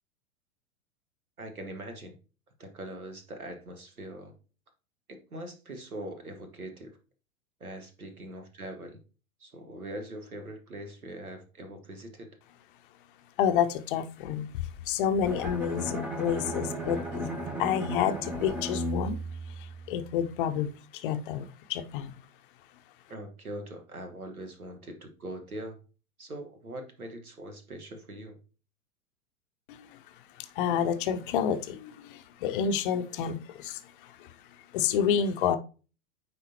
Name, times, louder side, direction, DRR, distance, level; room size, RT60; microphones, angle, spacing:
voice 1, 1.4-2.2 2.6-4.3 5.1-6.9 7.6-9.0 9.4-12.3 23.1-25.8 26.2-28.4, right 1 dB, 85° right, 7 dB, 1.4 m, -42 dB
voice 2, 13.4-17.3 17.6-19.2 19.6-22.2 29.7-30.0 30.4-34.3 34.7-35.6, left 8 dB, 40° left, 9 dB, 0.6 m, -29 dB
Bowed string instrument, 15.2-20.3, right 1 dB, 5° right, 0.4 m, -35 dB
9.3 x 3.8 x 2.8 m, 0.35 s
figure-of-eight pair, 100°, 42 cm